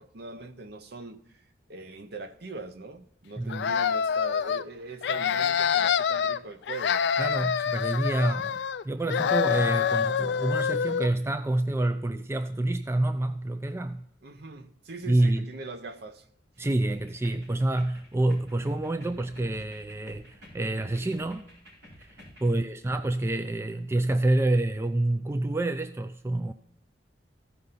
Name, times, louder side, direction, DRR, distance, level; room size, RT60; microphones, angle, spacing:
voice 1, 0.0-1.4 1.7-7.0 14.2-16.3 22.4-22.7, right 3 dB, 60° right, 0.8 m, -41 dB
sound 1, 3.5-4.6 5.0-6.4 6.7-8.8 9.1-11.1, left 7 dB, 65° left, 0.3 m, -26 dB
voice 2, 7.2-14.0 15.1-15.5 16.6-21.4 22.0-26.5, right 2 dB, 15° right, 0.3 m, -27 dB
sound 2, 16.9-22.5, left 1 dB, 85° right, 4.7 m, -51 dB
15.0 x 5.4 x 4.0 m
head